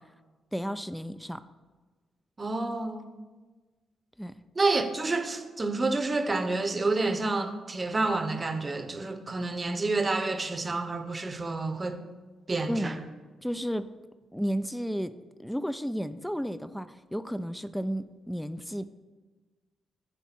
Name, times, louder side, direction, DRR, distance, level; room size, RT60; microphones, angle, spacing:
voice 1, 0.5-1.4 4.2-4.3 12.7-13.0 13.4-13.9 14.3-15.1 15.4-18.9, equal, 5° left, 0.4 m, -32 dB
voice 2, 2.4-3.0 4.5-12.0 12.5-13.0, right 3 dB, 35° right, 0.8 m, -29 dB
9.5 x 3.6 x 5.9 m
hypercardioid pair, 45°, 0 cm